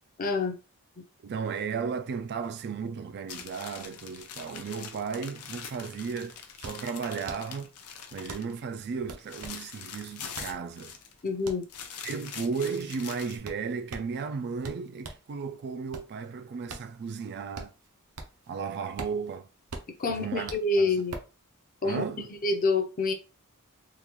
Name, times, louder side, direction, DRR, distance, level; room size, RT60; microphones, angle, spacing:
voice 1, 0.2-0.6 1.0-1.1 11.2-11.6 20.0-21.2 21.8-22.1 22.4-23.1, left 3 dB, 40° left, 0.6 m, -27 dB
voice 2, 1.2-7.7 8.1-11.0 12.0-17.7 18.5-19.5 20.1-20.5 20.8-21.0 21.8-22.3, right 5 dB, 50° right, 0.3 m, -35 dB
sound 1, 3.3-8.6 8.9-11.3 11.6-13.4, left 7 dB, 80° left, 0.6 m, -43 dB
sound 2, 6.6-15.3 15.7-18.5 18.8-21.4, right 3 dB, 80° right, 0.7 m, -44 dB
3.7 x 2.4 x 3.0 m
head